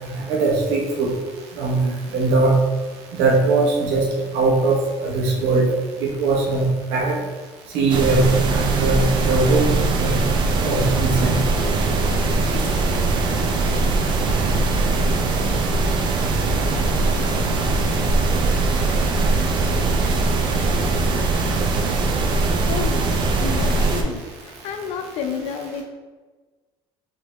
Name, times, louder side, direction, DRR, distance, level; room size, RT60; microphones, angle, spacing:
voice 1, 0.0-1.1 1.6-2.5 3.2-4.0 4.3-4.7 5.0-5.6 6.0-7.1 7.7-8.3 8.5-9.6 10.0-10.1 10.6-11.3, right 3 dB, 85° right, -2 dB, 1.0 m, -20 dB
sound 1, 7.9-24.0, right 3 dB, 45° right, 0.5 m, -21 dB
voice 2, 22.6-24.2 24.6-25.8, left 6 dB, 75° left, 5 dB, 0.5 m, -30 dB
3.7 x 3.3 x 2.9 m, 1.3 s
cardioid pair, 150°, 11 cm